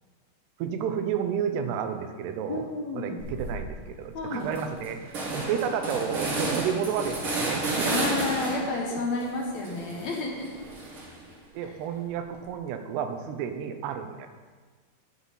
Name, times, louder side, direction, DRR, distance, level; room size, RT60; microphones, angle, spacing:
voice 1, 0.6-2.6 3.0-7.9 8.9-9.0 11.5-14.3, right 8 dB, 85° right, 7 dB, 2.9 m, -31 dB
voice 2, 2.5-3.2 4.1-4.5 7.8-10.7 11.6-11.7, left 2 dB, 60° left, 0 dB, 2.0 m, -31 dB
sound 1, 3.2-3.7 4.1-4.2 4.4-8.8 9.2-11.3, right 2 dB, 40° right, 2.2 m, -32 dB
9.7 x 7.9 x 5.7 m, 1.4 s
omnidirectional pair, 4.7 m